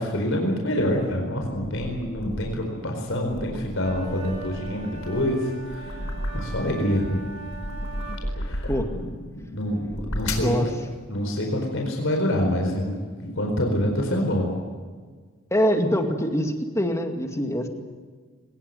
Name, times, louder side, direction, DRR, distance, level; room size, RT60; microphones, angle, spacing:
voice 1, 0.0-6.1 6.3-7.1 8.3-9.0 9.5-10.7 11.1-14.5, left 1 dB, 60° left, 1 dB, 4.6 m, -26 dB
sound 1, 0.8-2.7 3.1-6.9 7.3-9.1 9.7-10.6, equal, 90° left, 4.1 m, -34 dB
sound 2, 3.8-8.2, right 4 dB, 85° right, 6.6 m, -41 dB
voice 2, 15.5-17.7, equal, 15° left, 5 dB, 2.2 m, -24 dB
22.5 x 21.0 x 8.0 m, 1.5 s
head